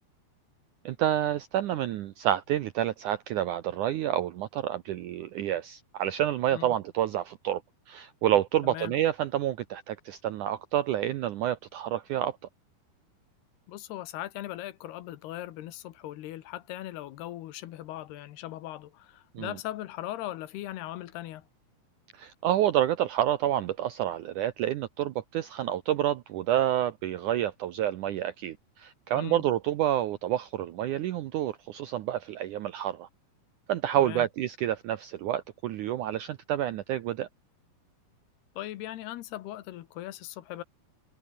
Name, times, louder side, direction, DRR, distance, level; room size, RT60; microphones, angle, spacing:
voice 1, 0.9-7.6 7.9-12.4 19.4-19.5 22.1-33.1 33.7-37.3, right 12 dB, 75° right, 1.8 m, -28 dB
voice 2, 8.6-8.9 13.7-21.5 29.1-29.4 34.0-34.3 38.6-40.6, left 14 dB, 80° left, 3.2 m, -39 dB
omnidirectional pair, 4.7 m